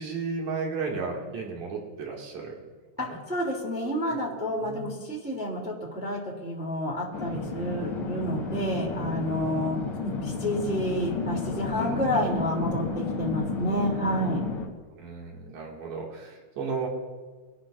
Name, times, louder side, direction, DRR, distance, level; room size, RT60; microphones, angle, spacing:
voice 1, 0.0-2.6 3.0-3.2 4.1-4.2 4.6-4.8 7.3-8.1 11.8-12.3 15.0-16.9, right 4 dB, 70° right, -1 dB, 3.5 m, -35 dB
voice 2, 3.0-14.4, equal, 5° right, -4 dB, 2.4 m, -30 dB
sound 1, 7.1-14.7, left 4 dB, 55° left, 2.0 m, -32 dB
25.5 x 12.0 x 2.6 m, 1.4 s
omnidirectional pair, 3.4 m